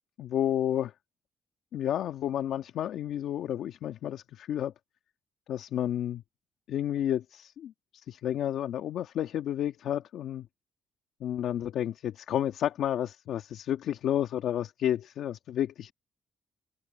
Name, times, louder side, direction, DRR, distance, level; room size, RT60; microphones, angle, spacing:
voice 1, 0.2-0.9 1.7-4.7 5.5-6.2 6.7-7.7 8.1-10.5 11.2-15.9, left 11 dB, 75° left, 1.6 m, -31 dB
cardioid pair, 90°, 0 cm